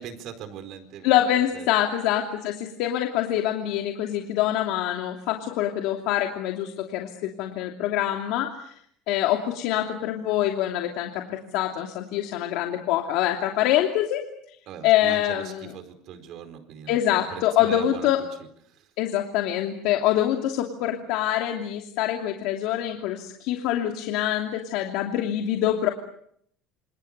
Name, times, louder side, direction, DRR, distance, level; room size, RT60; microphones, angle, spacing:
voice 1, 0.0-1.1 1.5-1.7 14.7-18.1 18.7-18.9, right 8 dB, 45° right, 8 dB, 4.5 m, -40 dB
voice 2, 1.0-8.6 9.1-14.2 14.8-15.7 16.9-18.2 19.0-25.9, left 12 dB, 60° left, 2 dB, 2.9 m, -25 dB
28.5 x 28.0 x 6.8 m, 0.70 s
cardioid pair, 165°, 0 cm